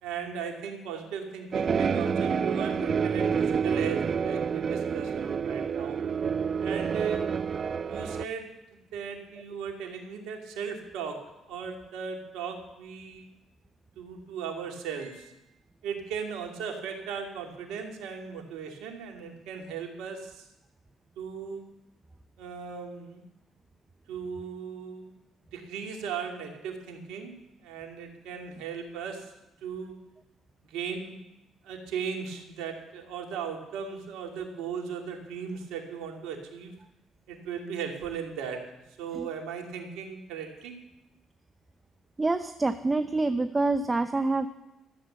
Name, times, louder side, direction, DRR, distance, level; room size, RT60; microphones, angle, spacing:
voice 1, 0.0-6.0 6.6-7.2 7.9-8.5 8.9-11.2 11.5-13.3 14.0-15.4 15.8-20.5 21.2-21.6 22.4-23.2 24.1-25.1 25.5-27.3 27.6-29.3 29.6-29.9 30.7-31.1 31.6-36.7 37.3-38.6 39.0-40.8, right 6 dB, 80° right, 2 dB, 2.5 m, -37 dB
sound 1, 1.5-8.2, right 6 dB, 50° right, 0.5 m, -28 dB
voice 2, 42.2-44.5, right 3 dB, 25° right, 9 dB, 0.8 m, -26 dB
14.0 x 8.2 x 7.6 m, 0.93 s
supercardioid pair, 60°, 0 cm